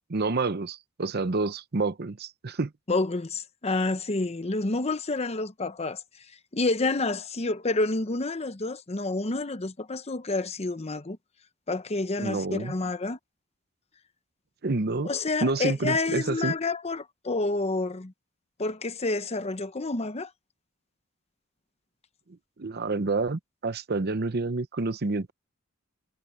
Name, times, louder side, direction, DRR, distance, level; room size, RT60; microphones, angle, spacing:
voice 1, 0.1-2.7 12.2-12.7 14.6-15.1 15.4-16.5 22.6-25.3, right 3 dB, 50° right, 0.8 m, -28 dB
voice 2, 2.9-6.2 6.5-11.2 11.7-13.2 15.0-18.1 18.6-20.3, left 3 dB, 30° left, 0.9 m, -29 dB
head